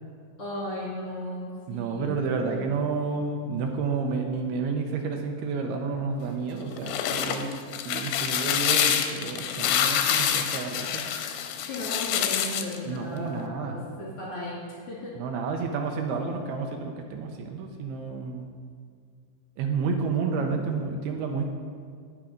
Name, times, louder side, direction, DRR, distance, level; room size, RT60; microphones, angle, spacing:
voice 1, 0.4-2.2 11.7-14.6 14.9-15.1 20.4-20.5, left 1 dB, 40° left, -6 dB, 2.5 m, -35 dB
voice 2, 1.7-7.5 7.9-11.0 12.8-13.8 15.1-18.5 19.6-21.4, right 4 dB, 80° right, 3 dB, 2.3 m, -30 dB
sound 1, 6.6-12.8, left 9 dB, 80° left, 2.7 m, -27 dB
17.5 x 6.0 x 5.1 m, 2.2 s
omnidirectional pair, 5.4 m